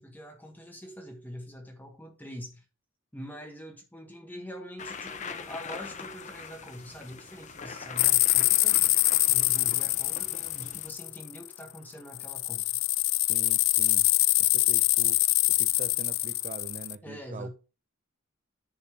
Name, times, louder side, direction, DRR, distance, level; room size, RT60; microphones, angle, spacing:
voice 1, 0.0-2.6 3.1-8.8 9.3-12.8 17.0-17.5, equal, 10° left, 1.5 m, -44 dB
sound 1, 4.8-10.9, left 5 dB, 35° left, 0.8 m, -42 dB
sound 2, 8.0-11.5 12.1-17.0, left 19 dB, 70° left, 0.3 m, -24 dB
voice 2, 13.1-14.1 14.4-15.2 15.5-17.5, right 4 dB, 40° right, 0.4 m, -43 dB
10.0 x 4.0 x 6.1 m
head